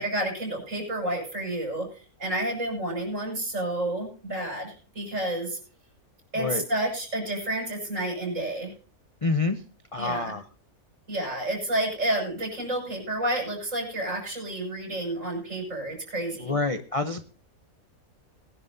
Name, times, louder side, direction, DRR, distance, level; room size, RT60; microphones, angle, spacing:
voice 1, 0.0-1.9 2.2-5.6 6.3-8.7 10.0-10.3 11.1-16.6, right 1 dB, 55° right, 2 dB, 6.6 m, -30 dB
voice 2, 9.2-9.6 9.9-10.4 16.4-17.2, left 3 dB, 30° left, 8 dB, 0.6 m, -27 dB
20.5 x 10.5 x 2.7 m, 0.39 s
omnidirectional pair, 1.6 m